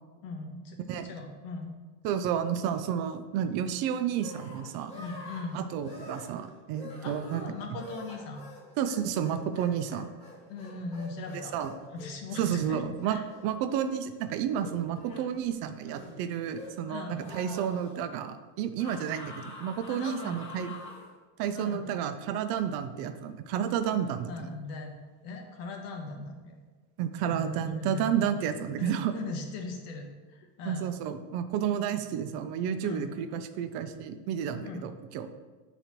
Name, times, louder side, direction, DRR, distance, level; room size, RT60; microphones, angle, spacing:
voice 1, 0.2-1.7 4.9-5.6 7.0-8.4 10.5-11.5 11.9-12.8 13.0-13.2 16.9-17.2 19.9-20.4 21.5-21.9 24.3-24.9 25.2-26.6 27.2-28.1 28.8-30.1 30.3-30.9 32.8-33.0 34.6-34.8, left 3 dB, 80° left, 3 dB, 1.3 m, -39 dB
voice 2, 2.0-4.9 5.5-7.5 8.8-10.1 11.5-11.7 12.4-13.2 13.4-20.7 21.4-24.5 27.0-29.1 30.7-35.3, right 8 dB, 50° right, 9 dB, 0.5 m, -31 dB
sound 1, 4.2-14.1 14.6-15.3 15.8-16.9 17.1-18.0 18.8-21.1, left 2 dB, 15° left, 1.3 m, -47 dB
8.9 x 4.0 x 2.9 m, 1.3 s
supercardioid pair, 140°, 47 cm